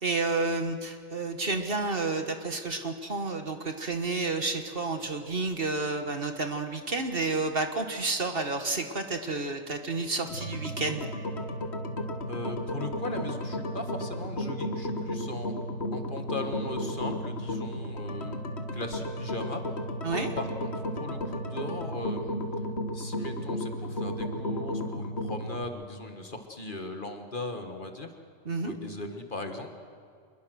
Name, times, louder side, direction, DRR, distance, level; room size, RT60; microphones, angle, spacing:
voice 1, 0.0-11.1 20.0-20.3 28.4-28.8, right 3 dB, 45° right, 6 dB, 1.7 m, -30 dB
sound 1, 10.3-25.6, equal, 55° left, 1.8 m, -34 dB
voice 2, 12.3-15.5 15.9-18.4 18.7-19.6 20.1-22.3 22.9-28.1 28.6-29.7, left 2 dB, 40° left, 5 dB, 1.8 m, -38 dB
26.0 x 21.5 x 6.4 m, 2.2 s
omnidirectional pair, 1.3 m